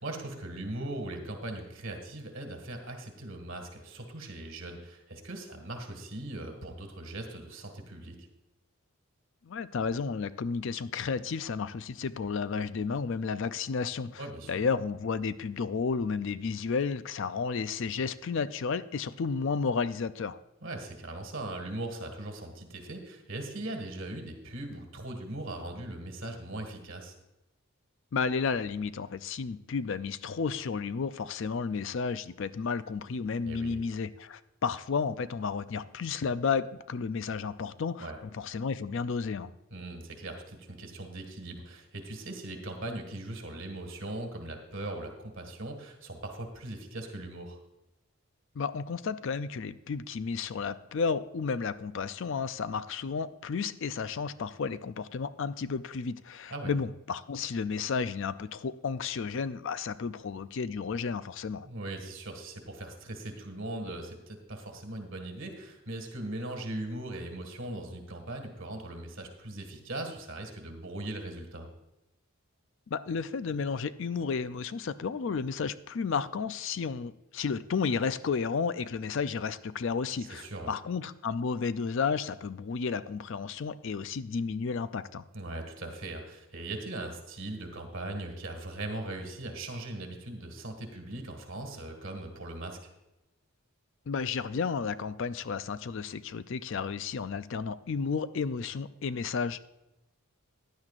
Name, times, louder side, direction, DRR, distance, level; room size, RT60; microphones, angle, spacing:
voice 1, 0.0-8.2 14.2-14.5 20.6-27.1 33.4-33.8 38.0-38.2 39.7-47.6 56.5-56.7 61.6-71.7 80.2-80.7 85.3-92.8, right 2 dB, 60° right, 4 dB, 1.8 m, -39 dB
voice 2, 9.4-20.4 28.1-39.5 48.6-61.7 72.9-85.2 94.1-99.6, left 5 dB, 60° left, 14 dB, 0.4 m, -32 dB
16.0 x 10.5 x 2.5 m, 0.94 s
head